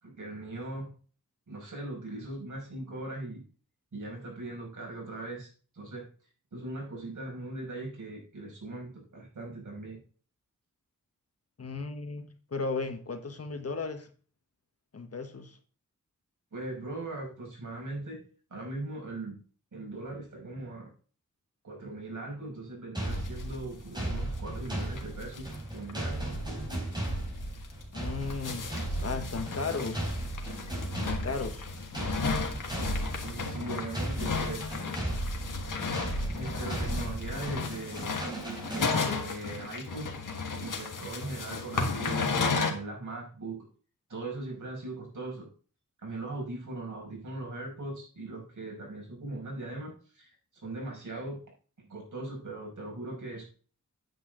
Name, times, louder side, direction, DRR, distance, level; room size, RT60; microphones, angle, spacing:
voice 1, 0.0-0.9 1.5-3.4 3.9-6.0 6.5-10.0 16.5-18.2 18.5-19.4 19.7-20.9 21.6-25.5 25.7-26.3 30.6-31.0 33.1-34.7 36.3-38.0 38.7-40.1 40.6-42.2 42.6-43.7 44.1-45.5 46.0-51.4 51.9-53.4, right 2 dB, 70° right, -1 dB, 5.8 m, -40 dB
voice 2, 11.6-12.2 12.5-14.1 14.9-15.6 27.9-28.7 29.0-30.1 31.0-31.7, left 4 dB, 50° left, 7 dB, 1.4 m, -35 dB
sound 1, 22.9-39.4, right 1 dB, 15° right, 4.4 m, -36 dB
sound 2, 23.1-23.6 23.9-24.0 24.2-24.3 24.7-24.8 25.0-25.6 25.9-26.0 26.3-26.4 26.9-27.1 27.6-42.7, left 4 dB, 75° left, 1.7 m, -34 dB
9.3 x 8.1 x 3.9 m, 0.40 s
wide cardioid pair, 135°, 32 cm